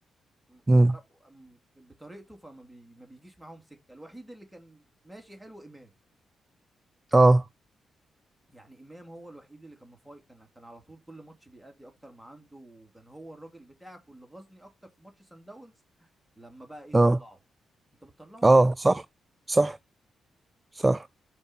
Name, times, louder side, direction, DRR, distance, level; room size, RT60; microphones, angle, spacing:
voice 1, 0.5-5.9 8.5-16.1 16.4-17.4 18.0-18.7, right 1 dB, 5° right, 2.8 m, -49 dB
voice 2, 7.1-7.4 16.9-17.2 18.4-19.0 19.5-19.8 20.7-21.1, right 2 dB, 25° right, 0.3 m, -19 dB
5.3 x 5.2 x 5.5 m
hypercardioid pair, 45°, 0 cm